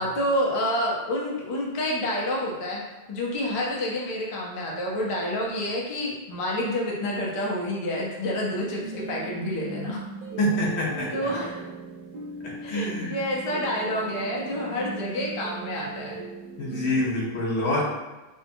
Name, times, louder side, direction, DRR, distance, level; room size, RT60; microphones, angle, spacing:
voice 1, 0.0-2.8 3.1-10.0 11.1-11.6 12.6-16.2, left 1 dB, 40° left, -3 dB, 0.5 m, -28 dB
sound 1, 8.5-17.0, right 3 dB, 45° right, 0.8 m, -39 dB
voice 2, 10.4-11.3 12.4-13.2 16.6-17.8, left 1 dB, 85° left, -3 dB, 1.0 m, -26 dB
2.7 x 2.2 x 2.6 m, 1.1 s
omnidirectional pair, 1.1 m